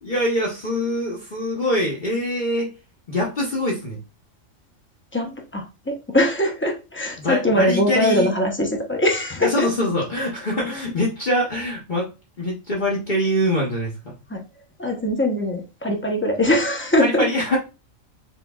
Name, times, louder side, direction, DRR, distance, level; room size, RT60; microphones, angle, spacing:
voice 1, 0.0-2.7 3.1-4.0 7.2-8.3 9.4-12.1 12.4-14.1 17.0-17.6, left 1 dB, 40° left, -4 dB, 1.0 m, -24 dB
voice 2, 5.1-9.7 14.3-14.4 14.8-17.3, left 1 dB, 10° left, 2 dB, 0.6 m, -22 dB
4.3 x 4.0 x 2.3 m, 0.30 s
omnidirectional pair, 1.4 m